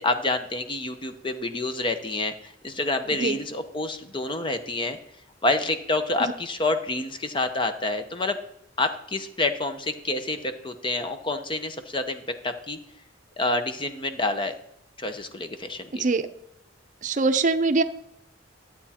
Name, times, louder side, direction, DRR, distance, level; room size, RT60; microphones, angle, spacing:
voice 1, 0.0-2.3 2.6-5.0 5.4-8.4 8.8-10.4 10.6-12.8 13.4-14.5 15.0-16.1, left 2 dB, 25° left, 8 dB, 0.9 m, -28 dB
voice 2, 15.9-16.3 17.0-17.8, right 3 dB, 45° right, 9 dB, 0.6 m, -23 dB
12.0 x 8.4 x 4.3 m, 0.77 s
head